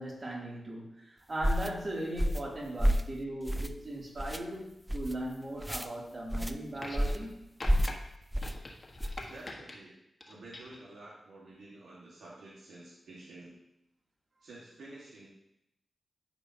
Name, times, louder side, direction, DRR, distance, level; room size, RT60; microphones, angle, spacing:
voice 1, 0.0-7.3, right 1 dB, 45° right, -5 dB, 3.0 m, -38 dB
sound 1, 1.4-1.7 2.2-2.5 2.8-3.1 3.5-3.8 4.2-4.4 4.9-5.1 5.6-5.9 6.3-6.5 7.0-7.3 7.6-8.0 8.3-8.6 9.0-9.2, equal, 5° right, 0.5 m, -29 dB
sound 2, 6.7-7.3 7.6-7.9 8.4-9.8 10.2-10.8 11.9-12.0, left 2 dB, 40° left, 1.5 m, -44 dB
voice 2, 9.2-9.9 10.3-13.5 14.4-15.3, right 2 dB, 90° right, -6 dB, 1.8 m, -50 dB
11.5 x 4.7 x 2.9 m, 0.82 s
cardioid pair, 50°, 0 cm